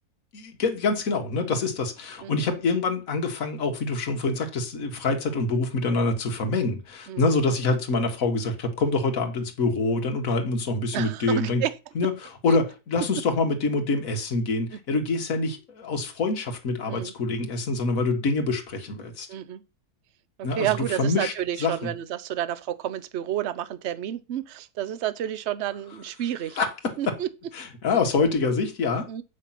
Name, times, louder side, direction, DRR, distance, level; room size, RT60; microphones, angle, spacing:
voice 1, 0.3-11.6 12.0-12.1 12.4-19.3 20.4-21.3 21.6-21.9 26.6-27.1 27.5-29.1, left 3 dB, 60° left, 1.9 m, -26 dB
voice 2, 10.9-11.7 12.5-12.6 14.7-14.8 16.9-17.1 19.3-19.6 20.4-26.6 27.0-27.3 29.1-29.2, right 11 dB, 55° right, 0.9 m, -30 dB
7.6 x 6.2 x 5.8 m
omnidirectional pair, 1.7 m